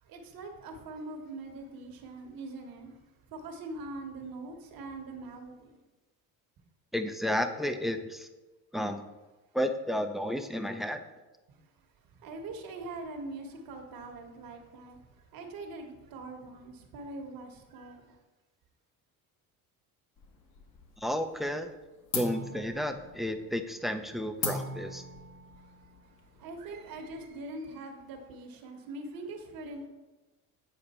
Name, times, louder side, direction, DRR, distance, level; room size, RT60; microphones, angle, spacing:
voice 1, 0.0-3.0 3.3-5.8 11.5-11.6 12.1-18.2 26.3-29.9, right 2 dB, 65° right, 4 dB, 1.4 m, -43 dB
voice 2, 6.9-8.3 8.7-9.0 9.5-11.0 21.0-21.7 22.1-25.0, equal, ahead, 8 dB, 0.5 m, -32 dB
sound 1, 20.2-21.1 21.4-21.8 22.1-27.3, left 3 dB, 55° left, 1.4 m, -39 dB
8.7 x 4.9 x 4.3 m, 1.1 s
cardioid pair, 100°, 37 cm